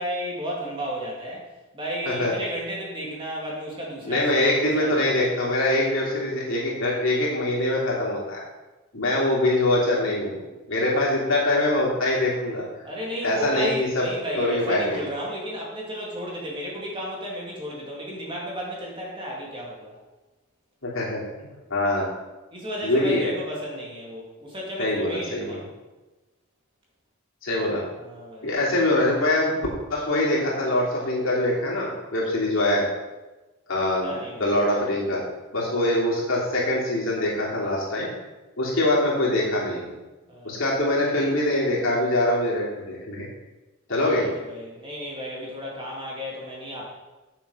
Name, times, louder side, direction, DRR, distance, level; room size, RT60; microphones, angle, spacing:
voice 1, 0.0-1.4 1.7-5.2 12.8-20.0 22.5-25.6 28.0-28.5 33.7-34.5 40.3-40.6 43.9-46.8, equal, 25° right, -3 dB, 2.5 m, -33 dB
voice 2, 4.0-8.4 8.9-12.6 13.2-14.1 14.4-15.0 20.8-22.1 22.8-23.3 24.8-25.6 27.4-27.8 28.4-32.9 33.7-35.2 35.5-38.1 38.6-39.9 40.4-43.3 43.9-44.3, left 1 dB, 65° left, -5 dB, 3.1 m, -24 dB
8.4 x 7.0 x 5.6 m, 1.1 s
head